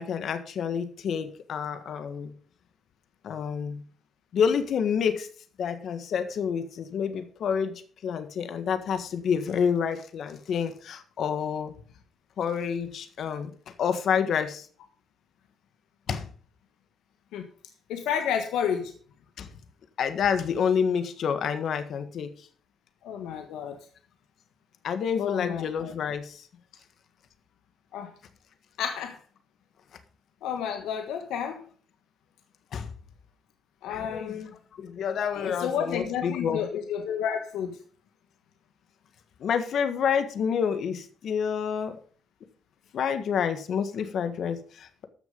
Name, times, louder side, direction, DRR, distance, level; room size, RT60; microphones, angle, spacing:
voice 1, 0.0-2.3 3.2-3.8 4.3-5.3 5.6-11.7 12.4-13.5 13.8-14.7 16.1-16.3 19.4-19.5 20.0-22.3 24.8-26.4 32.7-32.9 33.9-34.4 34.8-36.7 39.4-41.9 42.9-45.1, left 7 dB, 65° left, 9 dB, 1.6 m, -28 dB
voice 2, 17.9-18.9 23.0-23.8 25.2-25.9 27.9-28.1 28.8-29.2 30.4-31.6 33.8-34.5 35.3-37.8, left 8 dB, 90° left, 6 dB, 1.4 m, -31 dB
13.5 x 6.7 x 5.3 m, 0.42 s
cardioid pair, 90°, 0 cm